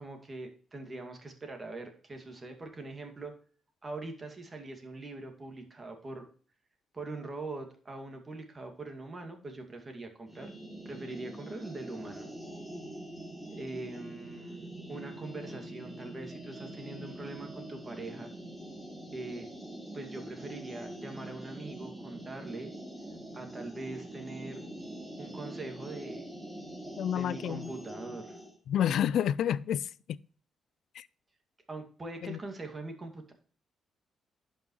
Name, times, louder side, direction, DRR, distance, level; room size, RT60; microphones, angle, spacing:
voice 1, 0.0-3.3 3.8-6.3 6.9-10.5 10.9-12.3 13.5-14.6 14.9-18.3 19.1-19.5 19.9-22.7 23.3-24.6 25.2-26.3 27.1-28.4 31.7-33.3, right 2 dB, 30° right, 2.1 m, -42 dB
sound 1, 10.3-28.5, right 1 dB, 5° right, 2.4 m, -44 dB
voice 2, 27.0-27.7 28.7-29.9 31.0-31.1 32.2-32.4, left 10 dB, 70° left, 0.3 m, -29 dB
11.0 x 5.5 x 3.1 m
cardioid pair, 90°, 0 cm